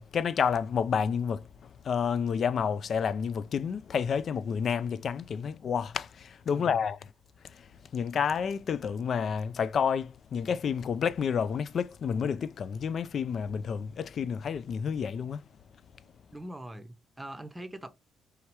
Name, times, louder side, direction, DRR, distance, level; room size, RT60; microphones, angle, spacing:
voice 1, 0.0-7.0 7.5-7.7 7.9-15.4, left 7 dB, 55° left, 0.3 m, -30 dB
voice 2, 6.5-6.8 16.3-17.9, right 1 dB, 15° right, 0.7 m, -42 dB
3.4 x 2.9 x 4.6 m
cardioid pair, 90°, 0 cm